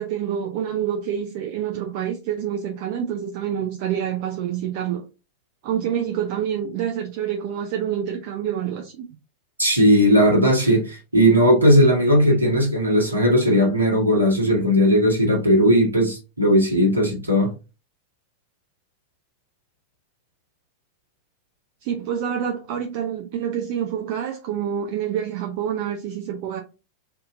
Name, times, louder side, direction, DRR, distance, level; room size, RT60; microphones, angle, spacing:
voice 1, 0.0-5.0 5.6-9.0 21.8-26.6, right 9 dB, 45° right, 0.6 m, -27 dB
voice 2, 9.6-17.5, equal, 80° right, 1.6 m, -17 dB
5.2 x 2.8 x 2.6 m
figure-of-eight pair, 90°, 0 cm